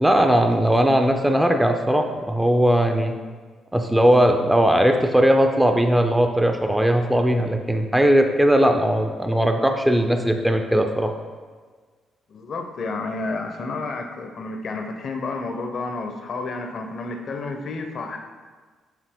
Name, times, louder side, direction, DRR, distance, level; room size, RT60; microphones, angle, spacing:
voice 1, 0.0-3.1 3.7-11.1, right 1 dB, 5° right, 4 dB, 0.3 m, -19 dB
voice 2, 12.3-18.2, left 3 dB, 55° left, 4 dB, 0.5 m, -30 dB
4.8 x 2.9 x 3.5 m, 1.5 s
cardioid pair, 90°, 0 cm